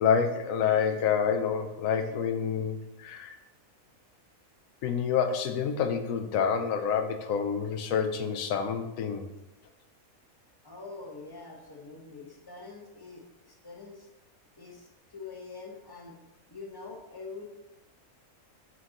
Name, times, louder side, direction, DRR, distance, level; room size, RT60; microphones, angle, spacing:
voice 1, 0.0-3.3 4.8-9.3, left 7 dB, 75° left, 7 dB, 1.0 m, -28 dB
voice 2, 10.6-14.1 14.6-16.2 16.5-17.4, left 4 dB, 20° left, 0 dB, 0.8 m, -45 dB
6.3 x 4.6 x 3.8 m, 0.97 s
omnidirectional pair, 1.5 m